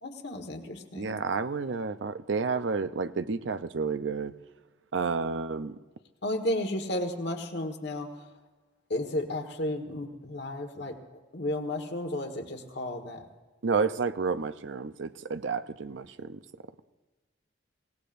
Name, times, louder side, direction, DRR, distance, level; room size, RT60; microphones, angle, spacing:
voice 1, 0.0-1.2 6.2-8.3 8.9-13.2, left 1 dB, 60° left, 1.6 m, -33 dB
voice 2, 0.9-4.3 4.9-5.8 13.6-16.4, right 4 dB, 70° right, 0.6 m, -30 dB
24.0 x 18.0 x 2.6 m
head